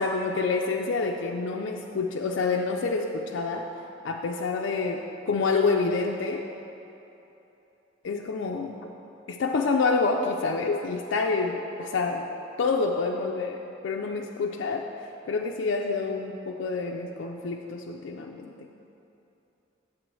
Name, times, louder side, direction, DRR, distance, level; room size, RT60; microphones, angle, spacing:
voice 1, 0.0-3.6 4.0-6.5 8.0-8.8 9.3-12.3 12.6-14.9 15.2-18.7, left 4 dB, 75° left, 1 dB, 0.4 m, -27 dB
7.5 x 7.4 x 3.1 m, 2.9 s
head